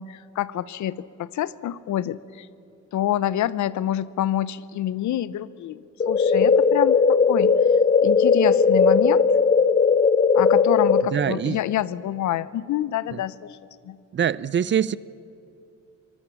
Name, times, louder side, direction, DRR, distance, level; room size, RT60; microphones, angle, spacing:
voice 1, 0.0-2.5 2.9-7.6 8.0-9.3 10.3-13.6 13.8-14.0, left 12 dB, 70° left, 18 dB, 0.8 m, -27 dB
sound 1, 6.0-11.0, left 5 dB, 25° left, 0.8 m, -18 dB
voice 2, 11.1-11.6 13.1-13.2 14.1-15.0, right 8 dB, 40° right, 20 dB, 0.5 m, -23 dB
26.5 x 20.0 x 7.2 m, 2.7 s
cardioid pair, 90°, 30 cm